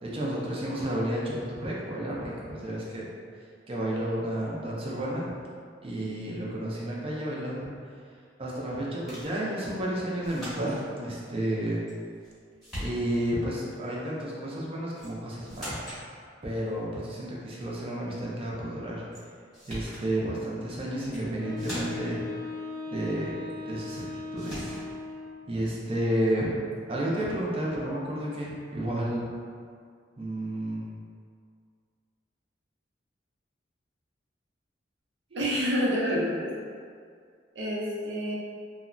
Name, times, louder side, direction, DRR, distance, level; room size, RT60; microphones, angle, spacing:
voice 1, 0.0-3.0 3.7-5.3 5.8-7.7 8.4-11.8 12.8-15.8 16.4-19.0 19.7-22.2 22.9-23.4 23.7-24.8 25.4-26.6 26.9-29.3 30.2-30.9, right 1 dB, 30° right, -5 dB, 0.5 m, -31 dB
sound 1, 9.1-9.4 10.2-10.8 11.9-12.3 12.6-13.3 14.9-15.2 15.5-16.0 19.1-19.2 19.5-20.1 21.0-21.3 21.6-22.2 23.9-24.0 24.4-24.9, equal, ahead, 1.0 m, -40 dB
Wind instrument woodwind instrument, 21.4-25.5, left 4 dB, 70° left, 0.6 m, -38 dB
voice 2, 35.3-36.5 37.5-38.3, equal, 70° right, -5 dB, 0.6 m, -28 dB
2.8 x 2.1 x 2.5 m, 2.1 s
head